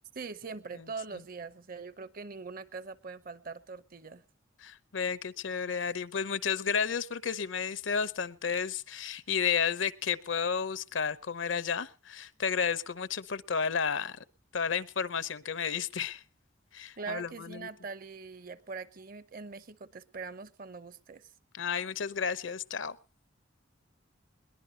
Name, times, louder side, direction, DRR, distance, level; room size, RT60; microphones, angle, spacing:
voice 1, 0.1-4.2 17.0-21.3, right 4 dB, 45° right, 15 dB, 0.8 m, -42 dB
voice 2, 4.6-14.2 14.5-16.2 16.7-17.7 21.5-23.0, left 6 dB, 70° left, 17 dB, 0.7 m, -32 dB
21.5 x 19.0 x 2.8 m, 0.33 s
head